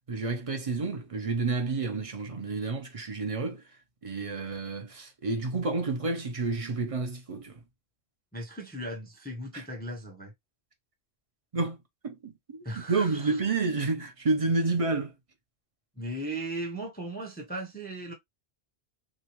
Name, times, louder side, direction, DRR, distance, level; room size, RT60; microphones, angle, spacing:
voice 1, 0.1-3.6 4.0-7.6 9.5-9.6 11.5-11.8 12.0-15.1, right 3 dB, 35° right, 0.7 m, -30 dB
voice 2, 8.3-10.3 12.6-13.4 16.0-18.1, right 1 dB, 10° left, 0.6 m, -37 dB
3.5 x 2.6 x 2.9 m
omnidirectional pair, 1.1 m